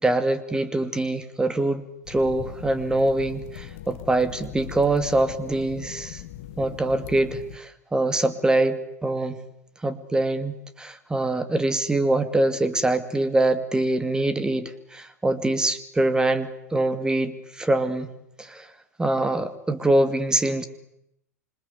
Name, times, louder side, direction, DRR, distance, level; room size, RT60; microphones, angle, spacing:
voice 1, 0.0-6.2 6.6-9.4 9.8-18.1 18.4-18.7 19.0-20.7, right 2 dB, 10° right, 11 dB, 2.4 m, -24 dB
sound 1, 2.0-7.6, left 12 dB, 50° left, 1.8 m, -40 dB
27.0 x 26.0 x 8.2 m, 0.79 s
figure-of-eight pair, 95°, 9 cm